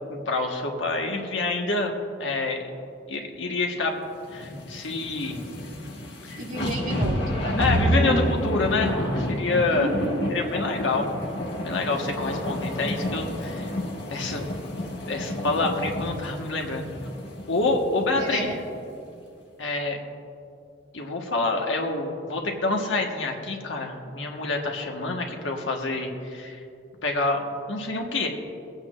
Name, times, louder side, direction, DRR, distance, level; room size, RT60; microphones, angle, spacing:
voice 1, 0.1-1.9 2.2-2.6 3.1-4.0 4.3-5.4 6.2-6.4 7.6-9.0 9.4-9.9 10.3-11.3 11.6-13.7 14.1-14.5 15.1-16.9 17.5-18.5 19.6-20.0 20.9-26.6 27.0-28.3, left 3 dB, 90° left, 1 dB, 1.4 m, -27 dB
sound 1, 4.3-18.7 19.2-19.3, left 1 dB, 60° left, 1.6 m, -32 dB
voice 2, 6.4-7.6 9.7-10.3 18.2-18.6, right 1 dB, 45° right, -2 dB, 1.8 m, -31 dB
sound 2, 7.0-9.4 10.1-10.2 10.8-10.9, equal, 10° right, 1.7 m, -25 dB
25.5 x 8.8 x 2.5 m, 2.6 s
head